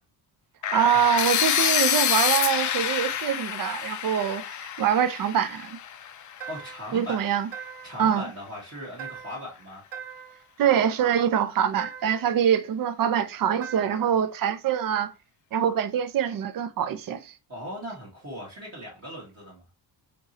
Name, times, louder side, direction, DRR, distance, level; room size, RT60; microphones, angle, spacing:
sound 1, 0.6-6.5, left 9 dB, 45° left, 0.4 m, -27 dB
voice 1, 0.7-5.8 6.9-7.5 8.0-8.2 10.6-15.1 15.5-17.3, right 9 dB, 50° right, 0.6 m, -24 dB
sound 2, 6.4-7.0 7.5-8.1 9.0-9.5 9.9-10.5 11.8-12.3 13.6-14.2, right 8 dB, 85° right, 2.2 m, -41 dB
voice 2, 6.5-7.2 7.8-9.8 17.5-19.6, left 1 dB, 35° right, 1.5 m, -38 dB
4.4 x 3.0 x 2.7 m
cardioid pair, 130°, 43 cm